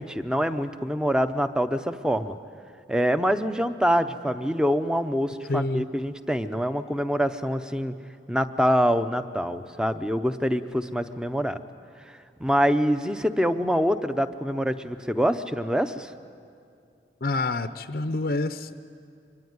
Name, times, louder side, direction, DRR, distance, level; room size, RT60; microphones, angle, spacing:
voice 1, 0.0-2.4 2.9-7.9 8.3-11.6 12.4-16.1, equal, 5° right, 10 dB, 0.7 m, -25 dB
voice 2, 5.5-5.9 17.2-18.7, left 2 dB, 55° left, 10 dB, 0.6 m, -27 dB
24.5 x 22.5 x 9.5 m, 2.4 s
head